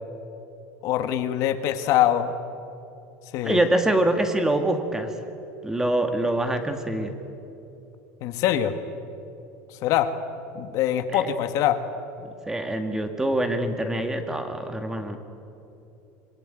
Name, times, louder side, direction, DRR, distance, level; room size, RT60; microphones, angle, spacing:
voice 1, 0.8-2.3 3.3-3.6 8.2-8.8 9.8-10.1 10.5-11.8, left 11 dB, 55° left, 9 dB, 1.5 m, -23 dB
voice 2, 3.4-5.1 5.6-7.1 11.1-11.3 12.5-15.2, right 1 dB, 10° right, 6 dB, 2.0 m, -25 dB
26.0 x 20.5 x 9.1 m, 2.9 s
supercardioid pair, 140°, 7 cm